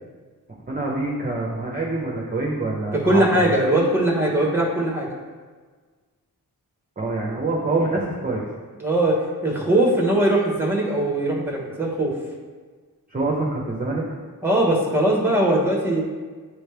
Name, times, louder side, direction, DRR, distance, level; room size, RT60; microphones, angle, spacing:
voice 1, 0.7-3.5 7.0-8.4 13.1-14.0, right 2 dB, 25° right, -3 dB, 0.8 m, -25 dB
voice 2, 3.0-5.1 8.8-12.1 14.4-16.0, right 1 dB, 5° right, -2 dB, 1.3 m, -20 dB
9.3 x 3.2 x 3.3 m, 1.5 s
wide cardioid pair, 65°, 37 cm